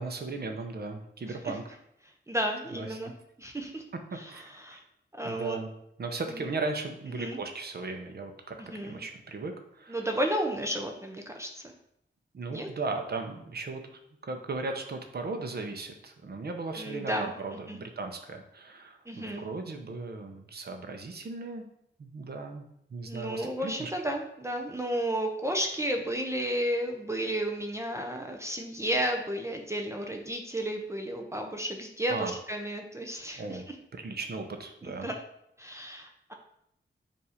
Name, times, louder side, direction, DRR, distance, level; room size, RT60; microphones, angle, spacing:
voice 1, 0.0-1.6 2.7-3.1 4.3-4.8 5.2-5.7 6.0-10.0 12.3-13.8 14.2-21.7 22.0-23.9 32.1-32.3 33.4-33.6 33.9-35.1, right 3 dB, 55° right, 5 dB, 0.8 m, -37 dB
voice 2, 2.3-3.1 3.4-3.8 4.1-4.8 5.1-5.6 6.3-6.5 7.1-7.4 8.6-9.0 9.9-11.7 12.5-12.7 16.8-17.3 17.7-17.8 19.1-19.5 23.1-33.8 34.8-35.1 35.6-36.3, right 1 dB, 15° right, 2 dB, 0.6 m, -33 dB
7.1 x 2.7 x 4.9 m, 0.77 s
wide cardioid pair, 125°, 20 cm